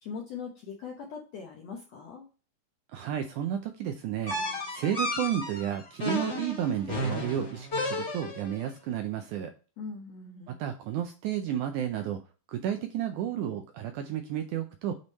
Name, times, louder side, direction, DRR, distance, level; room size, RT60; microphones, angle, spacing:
voice 1, 0.0-2.3 9.8-10.6, left 5 dB, 75° left, 1 dB, 1.5 m, -41 dB
voice 2, 2.9-9.5 10.5-12.2 12.5-14.9, right 10 dB, 80° right, 6 dB, 1.8 m, -32 dB
sound 1, 4.3-8.6, left 1 dB, 35° left, 1.1 m, -33 dB
8.1 x 3.6 x 4.1 m, 0.35 s
omnidirectional pair, 4.1 m